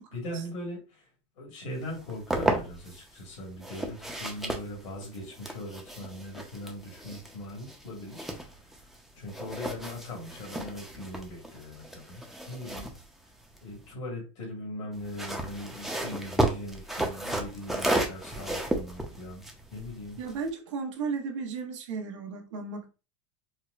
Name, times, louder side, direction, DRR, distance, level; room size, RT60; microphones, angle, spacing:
voice 1, 0.1-1.1 1.4-8.2 8.6-8.7 9.1-12.9 13.6-20.2, left 1 dB, 85° left, 1.6 m, -40 dB
sound 1, 1.9-3.0 3.6-9.0 9.3-13.9 14.9-20.5, right 1 dB, ahead, 0.4 m, -33 dB
voice 2, 20.2-22.9, right 5 dB, 90° right, 0.9 m, -34 dB
4.4 x 2.0 x 2.4 m
supercardioid pair, 145°, 15 cm